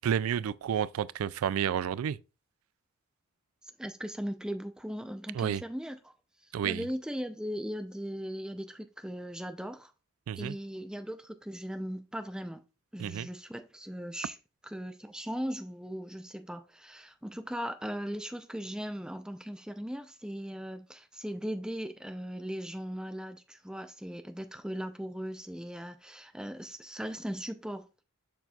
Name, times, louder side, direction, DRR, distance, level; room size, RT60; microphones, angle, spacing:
voice 1, 0.0-2.2 5.3-5.6 6.5-6.8 10.3-10.6 13.0-13.3, right 8 dB, 85° right, 0.3 m, -30 dB
voice 2, 3.8-6.1 6.6-9.9 10.4-12.6 12.9-14.4 14.6-28.0, equal, 5° right, 0.5 m, -38 dB
6.9 x 5.9 x 2.4 m
head